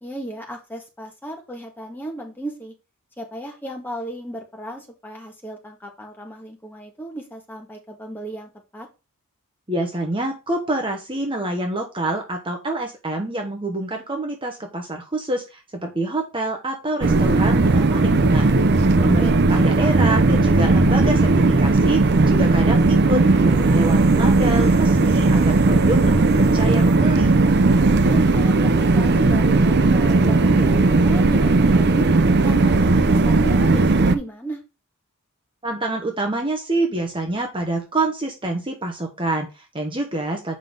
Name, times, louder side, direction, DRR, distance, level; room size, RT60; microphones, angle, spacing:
voice 1, 0.0-2.7 3.2-8.9 19.1-19.4 28.0-32.1 32.4-34.6, right 1 dB, 10° left, 1 dB, 1.7 m, -34 dB
voice 2, 9.7-18.6 19.0-27.4 35.6-40.6, right 2 dB, 25° right, 3 dB, 1.1 m, -26 dB
sound 1, 17.0-34.1, right 3 dB, 50° right, 0.6 m, -17 dB
7.5 x 5.3 x 3.8 m, 0.29 s
head